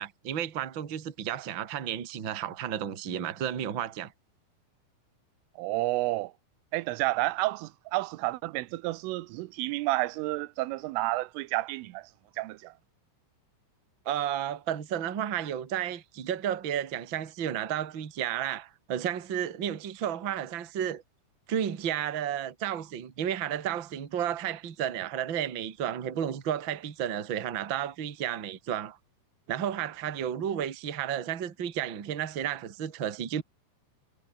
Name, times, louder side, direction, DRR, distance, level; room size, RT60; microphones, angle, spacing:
voice 1, 0.0-4.1 14.0-21.0 21.5-29.0 29.5-33.4, right 9 dB, 45° right, 1.7 m, -32 dB
voice 2, 5.6-6.3 6.7-12.1 12.4-12.7, right 19 dB, 90° right, 3.4 m, -30 dB
omnidirectional pair, 5.6 m